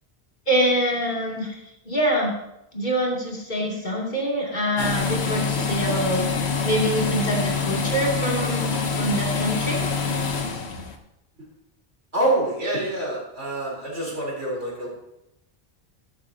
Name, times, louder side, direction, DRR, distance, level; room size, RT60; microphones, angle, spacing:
voice 1, 0.5-2.3 2.7-8.7 9.0-9.8, right 1 dB, 45° left, -2 dB, 3.1 m, -25 dB
sound 1, 4.8-11.0, left 5 dB, 80° left, 1.4 m, -26 dB
voice 2, 12.1-14.9, right 1 dB, 80° right, -3 dB, 4.3 m, -26 dB
13.0 x 13.0 x 2.9 m, 0.84 s
omnidirectional pair, 1.1 m